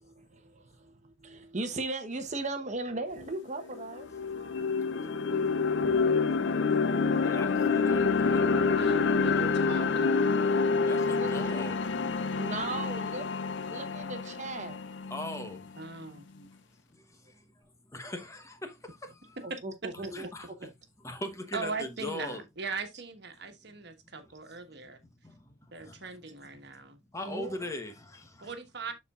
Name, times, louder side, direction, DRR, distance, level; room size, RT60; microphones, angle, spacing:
voice 1, 0.0-4.8 5.8-6.0 11.2-11.3 12.3-13.2 13.7-14.8 19.4-20.3 27.2-27.5, right 2 dB, 40° right, 1.0 m, -38 dB
sound 1, 3.2-3.3 3.7-15.8, left 4 dB, 65° left, 0.5 m, -27 dB
voice 2, 7.2-8.5 10.9-11.9 12.6-12.7 15.1-15.6 16.0-16.5 16.9-17.5 17.9-19.4 20.1-20.5 21.0-22.4 25.2-26.0 26.7-26.8 27.1-28.5, left 1 dB, 15° left, 1.0 m, -40 dB
voice 3, 8.8-10.4 12.6-12.7 15.8-16.2 19.5-19.6 21.5-25.0 25.7-27.0 28.4-28.9, right 4 dB, 60° right, 1.4 m, -40 dB
12.5 x 4.3 x 2.4 m
head